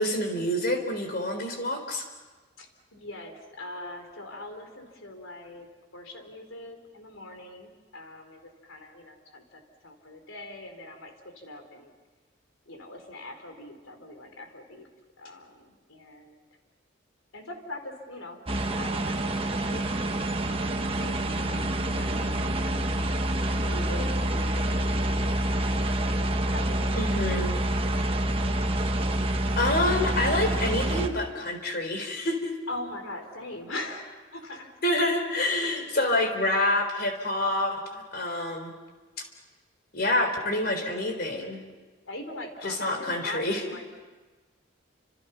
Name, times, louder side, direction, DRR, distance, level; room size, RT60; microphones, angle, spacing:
voice 1, 0.0-2.0 26.9-27.6 29.6-32.5 34.8-38.7 39.9-41.6 42.6-43.6, left 1 dB, 50° left, 5 dB, 4.0 m, -27 dB
voice 2, 2.6-5.7 5.9-11.9 12.7-14.9 15.2-16.4 17.3-19.9 20.3-22.9 23.6-25.7 26.0-27.3 28.7-28.8 32.7-34.7 35.5-35.9 42.0-44.0, left 1 dB, 90° left, 4 dB, 4.1 m, -42 dB
sound 1, 18.5-31.1, right 1 dB, 25° right, 1.3 m, -27 dB
30.0 x 27.0 x 5.8 m, 1.3 s
head